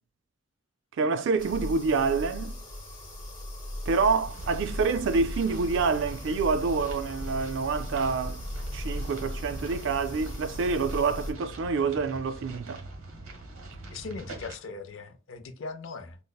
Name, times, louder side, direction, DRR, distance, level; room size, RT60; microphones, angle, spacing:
voice 1, 1.0-2.5 3.9-8.4 8.7-12.8, right 4 dB, 60° right, 0.3 m, -27 dB
sound 1, 1.4-11.3, left 1 dB, 20° left, 1.0 m, -38 dB
sound 2, 4.2-14.6, right 2 dB, 90° right, 0.9 m, -43 dB
voice 2, 13.9-16.2, left 4 dB, 65° left, 0.5 m, -39 dB
5.2 x 2.0 x 2.2 m
head